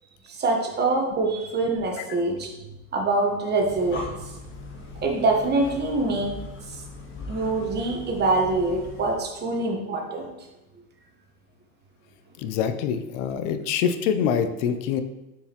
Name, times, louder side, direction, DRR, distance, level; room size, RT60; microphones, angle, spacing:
voice 1, 0.3-2.5 2.9-4.3 5.0-6.3 7.3-10.3, right 2 dB, 20° right, 1 dB, 1.2 m, -24 dB
Breathing, 3.5-9.3, left 3 dB, 25° left, 0.9 m, -40 dB
voice 2, 12.4-15.0, left 7 dB, 55° left, 9 dB, 0.7 m, -25 dB
6.8 x 4.7 x 3.0 m, 1.0 s
hypercardioid pair, 120°, 46 cm